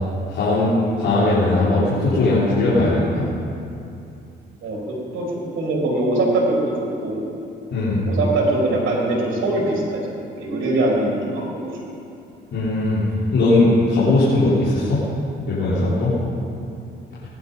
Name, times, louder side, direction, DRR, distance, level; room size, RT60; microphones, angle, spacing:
voice 1, 0.3-3.3 7.7-8.0 12.5-13.0 13.3-15.0 15.5-16.2, left 2 dB, 65° left, -11 dB, 4.1 m, -19 dB
voice 2, 5.6-6.7 7.0-7.2 8.0-10.0 10.4-11.9, right 2 dB, 75° right, -2 dB, 3.5 m, -22 dB
19.5 x 10.5 x 5.5 m, 2.7 s
cardioid pair, 90°, 20 cm